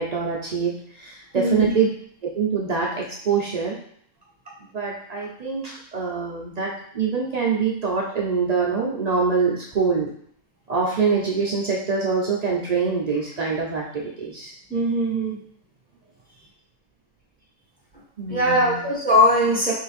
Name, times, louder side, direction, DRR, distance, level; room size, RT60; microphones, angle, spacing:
voice 1, 0.0-1.9 2.2-3.8 4.7-10.1 10.7-14.5 18.2-18.8, right 5 dB, 85° right, -3 dB, 0.3 m, -24 dB
voice 2, 1.3-1.7 14.7-15.4 18.3-19.7, equal, 5° left, -6 dB, 1.2 m, -20 dB
3.9 x 2.5 x 4.0 m, 0.64 s
omnidirectional pair, 1.5 m